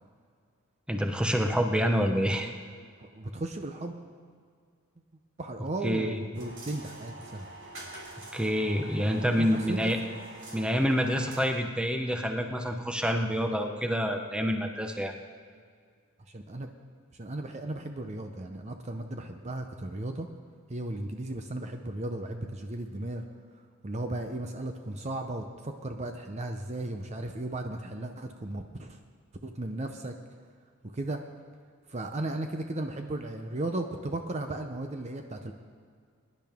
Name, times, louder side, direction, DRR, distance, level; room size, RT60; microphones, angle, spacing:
voice 1, 0.9-2.5 5.8-6.2 8.3-10.0 10.5-15.1, equal, 5° right, 4 dB, 0.9 m, -27 dB
voice 2, 3.0-4.0 5.4-7.5 9.2-9.9 16.3-16.7 17.1-20.3 20.7-23.2 23.8-29.0 29.4-30.1 30.9-31.2 31.9-35.5, right 1 dB, 30° right, 5 dB, 0.7 m, -35 dB
sound 1, 6.3-11.4, right 2 dB, 60° right, 3.1 m, -45 dB
21.5 x 10.5 x 3.6 m, 2.1 s
head